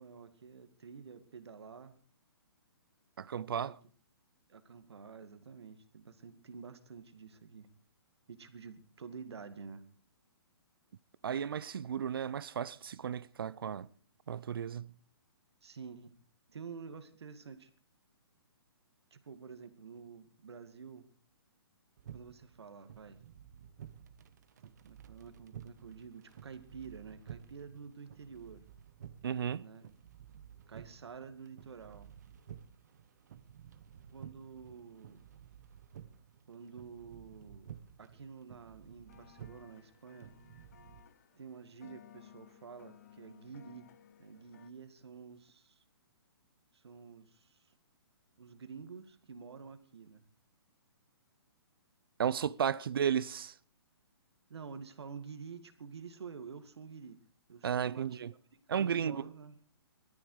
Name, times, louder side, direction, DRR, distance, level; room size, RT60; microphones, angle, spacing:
voice 1, 0.0-2.0 3.6-3.7 4.5-7.7 8.3-9.8 15.6-16.1 16.5-17.7 19.1-21.1 22.1-23.2 24.8-28.6 29.6-29.9 30.7-32.1 34.1-35.2 36.5-37.7 38.0-40.3 41.3-43.9 44.2-45.8 46.7-47.6 48.4-50.2 54.5-57.2 57.5-58.2 58.5-59.6, right 5 dB, 80° right, 2.2 m, -49 dB
voice 2, 3.2-3.8 11.2-13.9 14.3-14.9 29.2-29.7 52.2-53.5 57.6-58.3 58.7-59.3, right 8 dB, 60° right, 0.6 m, -34 dB
sound 1, 22.0-41.0, right 9 dB, 40° right, 1.1 m, -53 dB
sound 2, 39.1-44.7, left 10 dB, 40° left, 0.8 m, -59 dB
17.5 x 13.0 x 4.8 m
hypercardioid pair, 175°, 14 cm